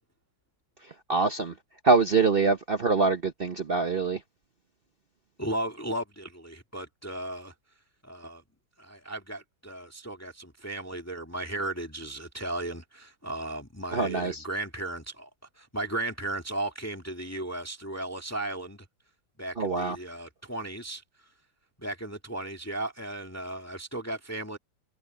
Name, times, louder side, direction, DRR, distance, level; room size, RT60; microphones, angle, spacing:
voice 1, 1.1-1.5 1.8-4.2 13.9-14.4 19.6-20.0, right 4 dB, 55° right, 0.6 m, -24 dB
voice 2, 5.4-7.5 8.0-8.4 8.8-15.3 15.6-18.9 19.4-21.0 21.8-24.6, right 1 dB, 10° left, 2.1 m, -35 dB
omnidirectional pair, 2.1 m